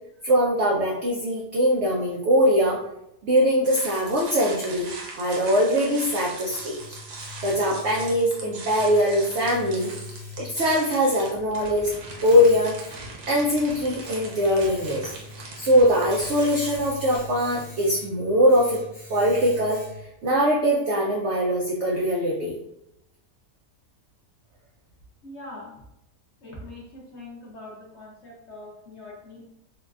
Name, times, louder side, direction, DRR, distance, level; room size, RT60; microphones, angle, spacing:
voice 1, 0.2-2.8 3.2-7.0 7.4-9.9 10.4-11.9 12.2-12.8 13.3-15.1 15.6-18.8 19.1-19.8 20.2-22.6, equal, 85° right, -3 dB, 0.6 m, -22 dB
sound 1, 3.6-17.2, right 3 dB, 70° right, 1.2 m, -40 dB
Domestic sounds home sounds, 5.9-20.3, left 3 dB, 30° left, 0.7 m, -43 dB
voice 2, 25.2-25.8 26.4-29.5, left 2 dB, 55° left, -4 dB, 0.8 m, -42 dB
3.8 x 2.2 x 2.3 m, 0.83 s
omnidirectional pair, 1.8 m